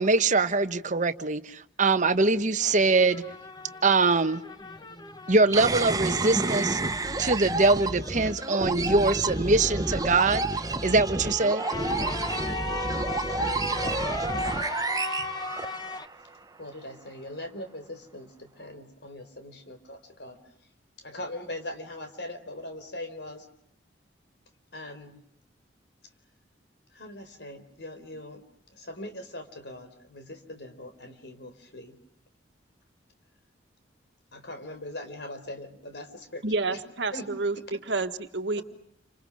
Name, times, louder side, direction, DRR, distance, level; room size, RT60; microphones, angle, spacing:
voice 1, 0.0-3.2 3.8-4.4 5.3-6.8 7.2-10.4 10.8-11.6, right 3 dB, 40° right, 1.2 m, -23 dB
sound 1, 2.6-7.2 7.4-16.1, left 3 dB, 20° left, 1.3 m, -38 dB
sound 2, 5.5-16.1, right 2 dB, 20° right, 1.0 m, -30 dB
voice 2, 16.6-20.4 21.0-23.5 24.7-25.2 26.9-28.4 28.7-32.0 34.3-36.4 36.7-36.8 37.1-37.3 37.6-37.7 38.6-38.7, left 1 dB, 60° left, 4.4 m, -41 dB
voice 3, 36.4-38.6, right 3 dB, 70° right, 1.7 m, -29 dB
29.5 x 26.5 x 6.4 m
head